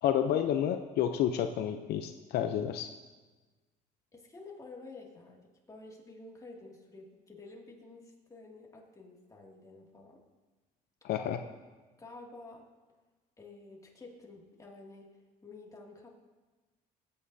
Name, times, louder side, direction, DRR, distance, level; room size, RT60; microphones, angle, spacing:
voice 1, 0.0-2.9 11.0-11.4, left 10 dB, 75° left, 7 dB, 0.6 m, -30 dB
voice 2, 4.1-10.2 11.1-11.3 12.0-12.7 13.4-15.1 15.4-16.1, left 3 dB, 20° left, -1 dB, 2.3 m, -50 dB
21.0 x 8.6 x 2.7 m, 1.3 s
cardioid pair, 110°, 17 cm